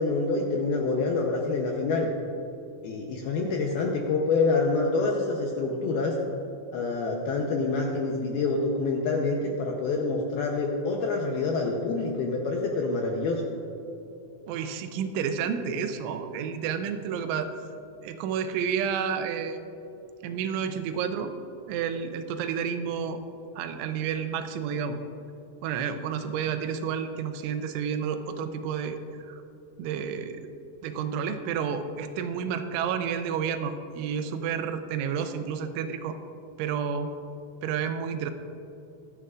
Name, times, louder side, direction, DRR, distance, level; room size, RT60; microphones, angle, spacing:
voice 1, 0.0-2.1 2.8-6.2 6.7-13.4, left 3 dB, 80° left, 0 dB, 2.2 m, -27 dB
voice 2, 14.5-17.5 18.0-19.6 20.2-21.3 21.7-23.2 23.6-25.0 25.6-29.0 29.2-29.4 29.8-30.5 30.8-36.2 36.6-37.1 37.6-38.3, right 7 dB, 85° right, 8 dB, 3.1 m, -30 dB
22.5 x 9.8 x 2.5 m, 2.9 s
omnidirectional pair, 5.5 m